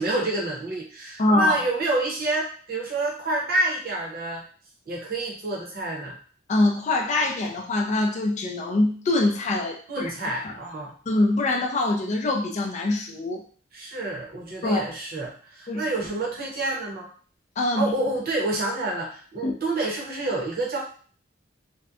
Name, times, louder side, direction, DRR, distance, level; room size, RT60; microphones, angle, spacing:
voice 1, 0.0-4.4 4.9-6.1 9.9-10.9 13.7-17.1 17.7-20.8, right 2 dB, 55° right, -2 dB, 0.8 m, -28 dB
voice 2, 1.2-1.6 6.5-10.1 10.4-10.5 11.1-13.4 14.6-14.8 15.7-15.9 17.6-17.9 19.4-19.5, left 2 dB, 40° left, 0 dB, 0.4 m, -24 dB
2.6 x 2.1 x 2.3 m, 0.43 s
head